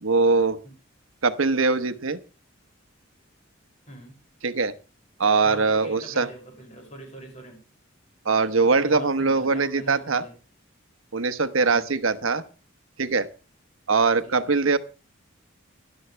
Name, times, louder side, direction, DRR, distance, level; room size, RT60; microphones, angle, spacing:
voice 1, 0.0-0.6 1.2-2.2 4.4-4.7 5.2-6.3 8.2-10.2 11.1-12.4 13.0-13.3 13.9-14.8, right 4 dB, 85° right, 11 dB, 1.1 m, -22 dB
voice 2, 5.4-7.6 8.6-10.3 11.5-11.9 14.2-14.8, equal, 35° left, 2 dB, 6.5 m, -43 dB
18.0 x 12.0 x 3.4 m, 0.34 s
head